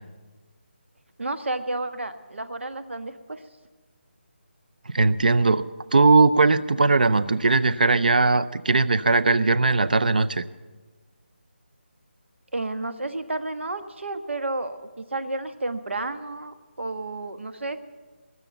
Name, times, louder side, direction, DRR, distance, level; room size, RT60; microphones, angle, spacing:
voice 1, 1.2-3.4 12.5-17.8, right 2 dB, 85° right, 9 dB, 1.3 m, -31 dB
voice 2, 4.9-5.6 5.9-10.4, right 3 dB, 45° right, 15 dB, 0.6 m, -19 dB
20.5 x 7.0 x 9.0 m, 1.3 s
figure-of-eight pair, 180°, 6 cm